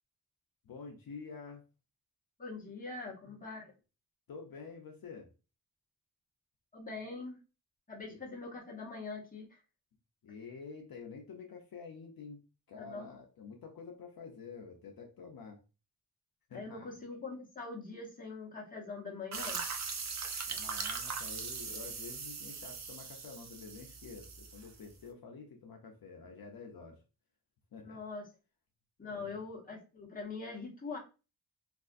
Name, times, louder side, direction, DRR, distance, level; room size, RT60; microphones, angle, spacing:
voice 1, 0.6-1.6 4.3-5.3 8.1-8.2 10.2-12.4 12.7-15.6 16.5-16.9 20.5-27.0 27.7-28.0 29.0-29.4, left 5 dB, 65° left, 2 dB, 0.6 m, -48 dB
voice 2, 2.4-3.7 6.7-7.4 7.9-9.6 12.8-13.1 16.5-19.6 27.8-28.2 29.0-31.0, left 3 dB, 20° left, -3 dB, 1.0 m, -43 dB
sound 1, 19.3-24.9, right 5 dB, 45° right, 0.5 m, -40 dB
3.4 x 2.5 x 2.4 m, 0.32 s
wide cardioid pair, 130°, 38 cm